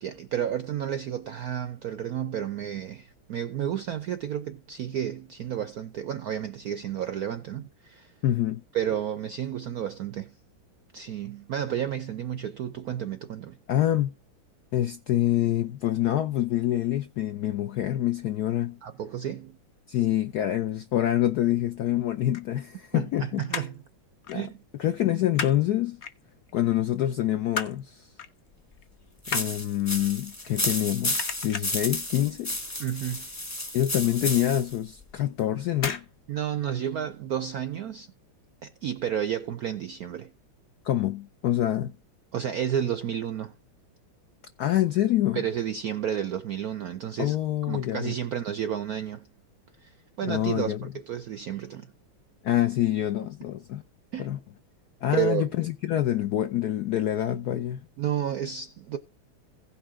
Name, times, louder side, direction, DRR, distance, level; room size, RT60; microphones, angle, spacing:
voice 1, 0.0-8.1 8.7-10.3 10.9-13.6 18.8-19.6 22.9-23.8 24.3-24.6 32.8-33.3 36.3-38.1 38.6-40.3 42.3-43.5 45.3-47.4 47.7-49.3 49.8-51.9 54.1-54.3 55.1-55.5 58.0-59.0, right 9 dB, 75° right, 0.8 m, -31 dB
voice 2, 8.2-8.6 13.7-14.1 14.7-18.8 19.9-23.7 24.3-24.5 24.8-26.0 26.5-28.1 29.3-32.6 33.7-36.0 40.8-41.9 44.6-45.4 47.2-48.1 50.2-50.9 52.4-53.8 54.2-54.4 55.0-57.8, left 13 dB, 80° left, 0.8 m, -26 dB
sound 1, 22.3-23.1 23.4-23.9 24.2-24.5 24.7-25.6 26.0-26.6 27.0-27.8 28.2-28.4 28.7-30.8 31.1-31.9 32.3-32.7 32.9-33.0 33.4-33.5 33.9-34.0 34.9-35.1 35.7-36.1 36.4-36.5, left 6 dB, 45° left, 0.9 m, -34 dB
sound 2, 29.2-34.8, left 1 dB, 10° left, 0.9 m, -32 dB
16.5 x 5.6 x 3.6 m
omnidirectional pair, 2.3 m